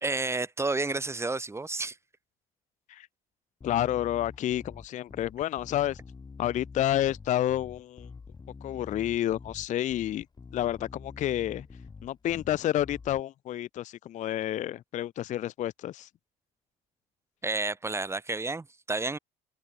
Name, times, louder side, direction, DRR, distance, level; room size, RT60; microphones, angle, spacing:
voice 1, 0.0-2.0 17.4-19.2, right 3 dB, 15° right, 1.7 m, -30 dB
voice 2, 3.6-6.0 6.4-8.1 8.6-10.3 10.5-11.7 12.0-16.1, left 12 dB, 45° left, 0.4 m, -29 dB
Bass guitar, 3.6-13.2, left 5 dB, 25° left, 1.4 m, -47 dB
open air
cardioid pair, 110°, 17 cm